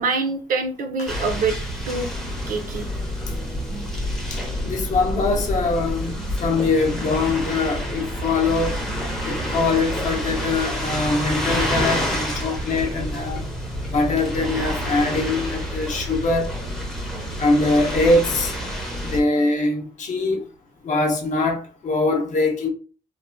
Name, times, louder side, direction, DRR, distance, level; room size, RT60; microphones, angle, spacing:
voice 1, 0.0-1.6 1.9-2.1 2.5-2.9, right 4 dB, 60° right, 0.5 m, -25 dB
sound 1, 1.1-19.2, equal, 5° left, 0.5 m, -28 dB
sound 2, 2.4-10.7, right 2 dB, 80° right, 1.0 m, -40 dB
voice 2, 4.6-8.8 9.2-13.4 13.9-16.5 17.4-18.5 19.0-20.4 20.8-22.7, left 3 dB, 55° left, 0.6 m, -22 dB
3.0 x 2.1 x 2.5 m
wide cardioid pair, 160°, 16 cm